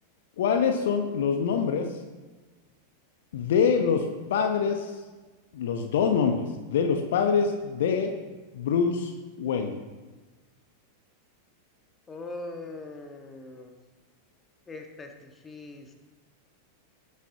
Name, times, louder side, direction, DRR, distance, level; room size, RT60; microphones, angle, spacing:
voice 1, 0.4-1.9 3.3-4.9 5.5-8.1 8.5-9.1 9.4-9.8, left 6 dB, 55° left, 5 dB, 1.0 m, -25 dB
voice 2, 12.1-13.7 14.7-15.9, left 2 dB, 15° left, 4 dB, 1.6 m, -41 dB
18.5 x 9.3 x 3.0 m, 1.3 s
figure-of-eight pair, 90°, 0 cm